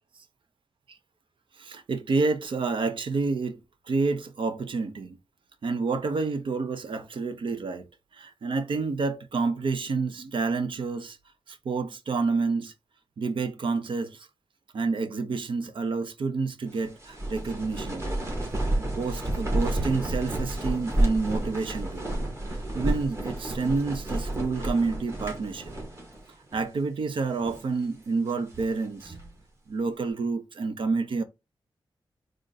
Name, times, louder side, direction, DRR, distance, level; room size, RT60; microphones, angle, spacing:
voice 1, 1.6-3.6 3.9-5.2 5.6-11.2 11.5-12.7 13.2-14.3 14.7-18.1 18.7-22.1 22.7-25.7 26.5-29.1 29.7-31.2, right 4 dB, 70° right, 0.7 m, -29 dB
sound 1, 16.7-26.2 26.5-26.6 27.2-27.7 28.3-29.4, right 1 dB, 30° right, 1.7 m, -30 dB
3.8 x 2.5 x 3.9 m
wide cardioid pair, 100°, 9 cm